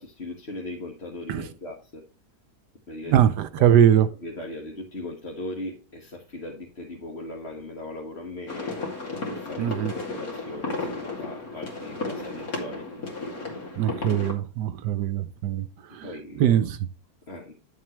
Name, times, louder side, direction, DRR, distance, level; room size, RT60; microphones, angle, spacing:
voice 1, 0.0-2.0 2.9-3.2 3.6-3.7 4.2-8.8 9.3-12.9 16.0-16.5 17.3-17.5, left 1 dB, 40° left, 1.8 m, -38 dB
voice 2, 3.1-4.1 9.6-9.9 13.8-15.7 15.9-16.1 16.4-16.8, right 10 dB, 75° right, 1.2 m, -21 dB
sound 1, 8.5-14.3, left 3 dB, 55° left, 3.0 m, -33 dB
11.0 x 7.4 x 3.2 m
omnidirectional pair, 1.8 m